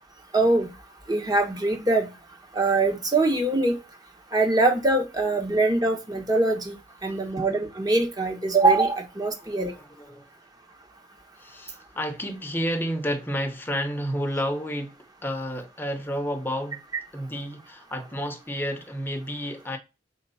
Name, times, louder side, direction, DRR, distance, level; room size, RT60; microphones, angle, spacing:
voice 1, 0.3-0.7 1.1-2.1 2.5-3.8 4.3-6.8 7.0-9.7, right 2 dB, 20° right, 1.2 m, -23 dB
voice 2, 9.4-10.2 11.4-16.8 17.1-19.8, equal, 10° left, 1.0 m, -31 dB
4.5 x 3.9 x 5.6 m
head